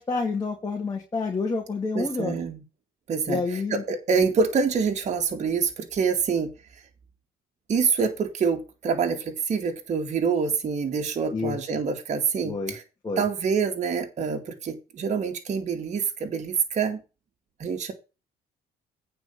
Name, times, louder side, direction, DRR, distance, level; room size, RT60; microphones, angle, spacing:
voice 1, 0.0-2.4 3.3-3.8 11.3-11.6 12.4-12.7 13.0-13.2, left 4 dB, 25° left, 0 dB, 2.6 m, -28 dB
voice 2, 1.9-2.6 3.1-6.5 7.7-12.8 13.2-17.0 17.6-17.9, right 5 dB, 45° right, 4 dB, 2.2 m, -26 dB
9.1 x 4.7 x 7.0 m, 0.30 s
cardioid pair, 110°, 17 cm